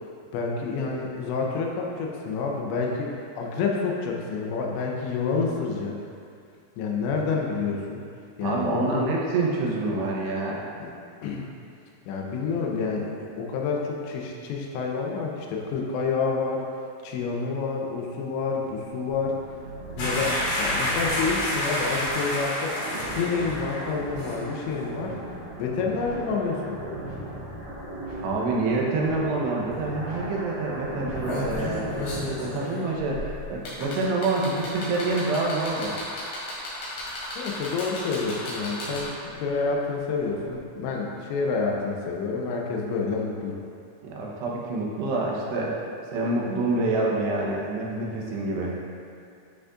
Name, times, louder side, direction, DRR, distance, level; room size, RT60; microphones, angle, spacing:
voice 1, 0.3-6.0 6.8-8.0 8.4-9.1 10.8-10.9 11.2-11.5 12.1-16.7 17.0-19.4 20.0-22.8 23.2-25.2 25.6-26.8 37.4-43.6, left 4 dB, 90° left, -1 dB, 3.1 m, -28 dB
voice 2, 8.4-10.7 28.2-32.0 32.4-36.0 44.0-45.8 46.1-48.7, right 3 dB, 80° right, -3 dB, 3.0 m, -27 dB
sound 1, 18.6-32.6, right 1 dB, 55° right, 1.5 m, -37 dB
sound 2, 20.0-23.9 24.2-24.4, left 1 dB, 55° left, 2.0 m, -28 dB
sound 3, 29.7-29.8 30.1-30.3 30.9-39.3 40.5-40.6, left 2 dB, 70° left, 4.2 m, -34 dB
11.0 x 6.2 x 2.5 m, 2.3 s
omnidirectional pair, 5.1 m